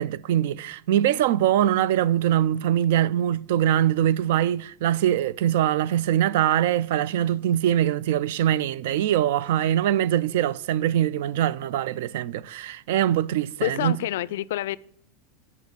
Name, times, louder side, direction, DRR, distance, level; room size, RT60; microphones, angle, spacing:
voice 1, 0.0-14.0, right 11 dB, 65° right, 0.3 m, -23 dB
voice 2, 13.6-14.8, left 14 dB, 85° left, 0.4 m, -27 dB
9.3 x 5.4 x 6.7 m
supercardioid pair, 175°, 0 cm